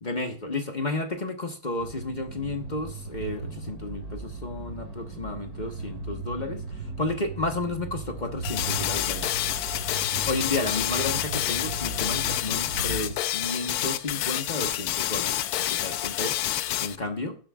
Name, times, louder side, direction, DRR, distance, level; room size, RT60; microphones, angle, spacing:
voice 1, 0.0-9.6 10.3-16.4 16.8-17.4, left 2 dB, 30° left, 1.1 m, -32 dB
sound 1, 1.8-13.1, right 3 dB, 70° right, 2.6 m, -37 dB
sound 2, 8.4-17.0, left 13 dB, 75° left, 1.0 m, -28 dB
16.5 x 7.7 x 2.4 m
omnidirectional pair, 1.7 m